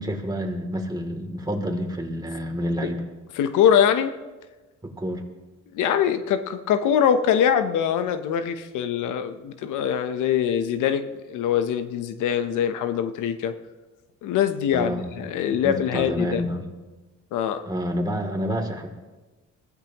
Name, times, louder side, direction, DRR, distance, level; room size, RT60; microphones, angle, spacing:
voice 1, 0.0-3.0 4.8-5.2 14.7-15.3 15.6-16.7 17.7-18.9, equal, 15° right, 2 dB, 2.8 m, -28 dB
voice 2, 3.4-4.1 5.7-13.5 14.2-16.4 17.3-17.6, left 9 dB, 90° left, 10 dB, 0.9 m, -23 dB
23.0 x 15.5 x 3.0 m, 1.2 s
cardioid pair, 90°, 30 cm